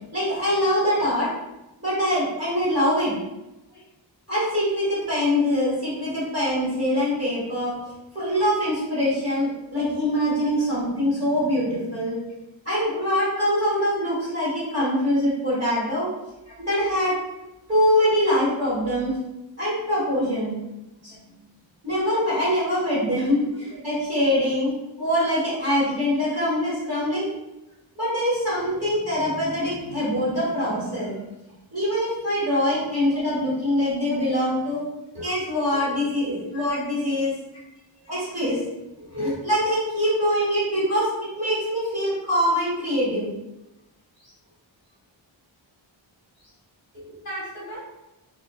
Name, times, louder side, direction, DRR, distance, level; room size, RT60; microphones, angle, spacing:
voice 1, 0.1-1.3 1.8-3.1 4.3-7.7 8.1-12.2 12.6-16.1 16.7-17.1 17.7-19.1 19.6-20.5 21.0-21.1 21.8-24.7 25.0-27.2 27.9-31.1 31.7-34.8 35.1-37.3 38.1-38.6 39.1-41.1 41.4-43.3 47.0-47.2, equal, 30° right, -9 dB, 1.4 m, -23 dB
voice 2, 47.2-47.8, right 1 dB, 35° left, -8 dB, 1.1 m, -39 dB
2.4 x 2.4 x 2.4 m, 0.96 s
wide cardioid pair, 115°, 47 cm